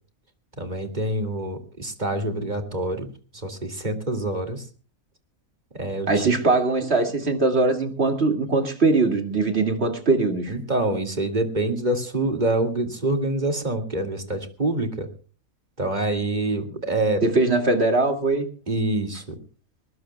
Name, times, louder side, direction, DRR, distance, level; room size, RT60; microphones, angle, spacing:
voice 1, 0.6-3.1 3.4-4.6 5.7-6.2 10.5-15.1 15.8-17.2 18.7-19.4, right 2 dB, 30° right, 6 dB, 2.5 m, -26 dB
voice 2, 6.1-10.5 17.2-18.5, right 3 dB, 50° right, 5 dB, 2.5 m, -21 dB
22.5 x 20.0 x 2.3 m, 0.37 s
omnidirectional pair, 1.4 m